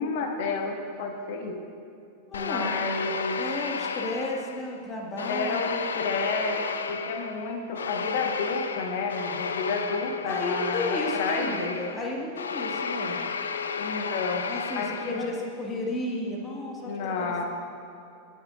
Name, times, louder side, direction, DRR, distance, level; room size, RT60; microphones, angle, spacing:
voice 1, 0.0-1.6 2.3-3.5 5.3-11.8 13.8-14.5 14.7-15.4 16.8-17.4, left 4 dB, 50° left, 4 dB, 1.4 m, -31 dB
sound 1, 2.3-4.8 5.2-15.5, left 5 dB, 70° left, 0.5 m, -33 dB
voice 2, 2.3-2.7 3.4-5.6 10.2-13.2 14.5-17.4, left 1 dB, 20° left, -1 dB, 2.0 m, -33 dB
22.5 x 9.4 x 2.6 m, 2.7 s
figure-of-eight pair, 90°, 0 cm